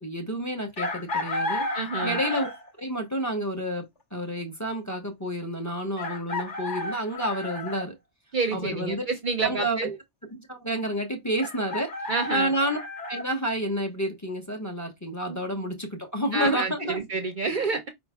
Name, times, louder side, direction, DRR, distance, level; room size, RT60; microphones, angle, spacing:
voice 1, 0.0-1.7 2.0-2.5 2.8-8.0 8.5-9.1 9.4-9.9 10.3-12.8 13.1-17.0, right 1 dB, 15° left, 1.0 m, -30 dB
Chicken rooster, 0.8-2.7 4.4-4.5 6.0-7.9 11.4-13.2, left 2 dB, 85° left, 4.1 m, -32 dB
voice 2, 1.7-2.2 8.3-10.0 12.1-12.5 15.3-15.4 16.3-17.9, right 4 dB, 50° right, 0.7 m, -28 dB
4.9 x 4.4 x 2.2 m
omnidirectional pair, 1.2 m